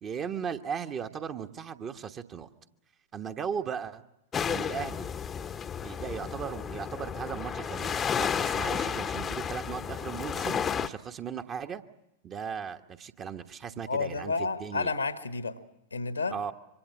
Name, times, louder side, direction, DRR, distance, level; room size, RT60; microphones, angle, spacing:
voice 1, 0.0-2.5 3.1-4.0 4.5-5.1 5.8-11.8 12.2-14.3 14.6-14.9 16.3-16.5, right 7 dB, 30° right, 7 dB, 1.2 m, -37 dB
sound 1, 4.3-10.9, left 7 dB, 20° left, 0.9 m, -32 dB
voice 2, 13.9-15.6 15.9-16.4, left 4 dB, 80° left, 10 dB, 1.5 m, -31 dB
26.0 x 25.0 x 7.6 m, 0.87 s
figure-of-eight pair, 90°, 0 cm